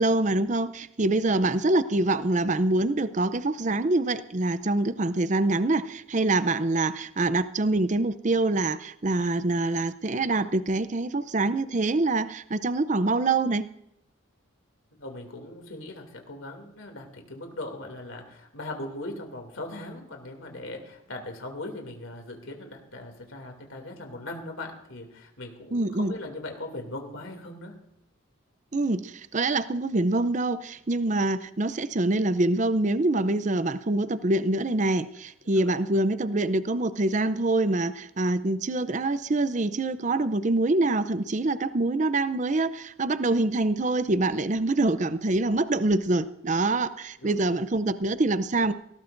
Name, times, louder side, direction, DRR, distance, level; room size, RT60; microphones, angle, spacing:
voice 1, 0.0-13.7 25.7-26.1 28.7-48.7, right 2 dB, 35° right, 14 dB, 0.5 m, -25 dB
voice 2, 15.0-27.7 35.5-35.8 47.2-47.4, left 2 dB, 75° left, 3 dB, 2.7 m, -39 dB
19.0 x 18.0 x 2.6 m, 0.79 s
head